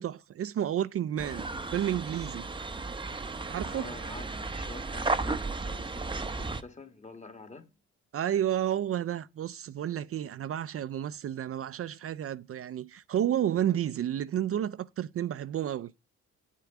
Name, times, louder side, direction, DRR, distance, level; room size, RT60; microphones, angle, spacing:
voice 1, 0.0-2.5 3.5-3.9 8.1-15.9, right 10 dB, 50° right, 0.5 m, -31 dB
sound 1, 1.2-6.6, right 3 dB, 15° right, 0.7 m, -34 dB
voice 2, 3.7-7.8, left 3 dB, 25° left, 1.7 m, -47 dB
8.3 x 8.3 x 4.8 m
cardioid pair, 90°, 30 cm